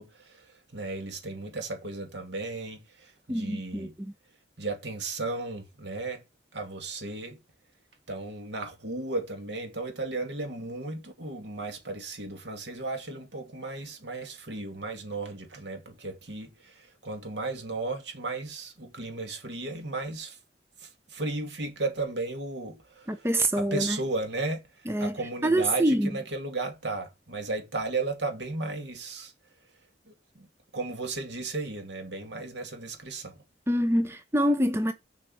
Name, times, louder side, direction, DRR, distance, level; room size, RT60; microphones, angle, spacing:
voice 1, 0.0-4.0 4.6-6.2 6.5-7.4 8.1-20.4 20.8-23.3 23.5-29.3 30.1-30.5 30.7-33.4, right 3 dB, 75° right, 2.4 m, -35 dB
voice 2, 3.3-4.1 23.1-24.0 24.9-26.1 33.7-34.9, right 1 dB, 15° right, 0.8 m, -26 dB
6.8 x 5.6 x 7.0 m
head